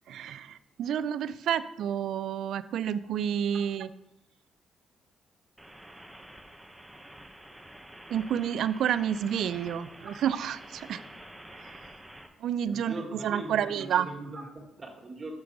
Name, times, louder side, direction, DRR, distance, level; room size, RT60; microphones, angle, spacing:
voice 1, 0.1-3.9 8.1-11.0 11.6-11.8 12.4-14.1, right 9 dB, 75° right, 14 dB, 0.4 m, -30 dB
sound 1, 5.6-12.3, right 1 dB, 5° right, 0.9 m, -48 dB
voice 2, 12.7-15.3, right 2 dB, 30° right, 1 dB, 1.8 m, -40 dB
6.8 x 5.9 x 5.0 m, 0.86 s
cardioid pair, 90°, 0 cm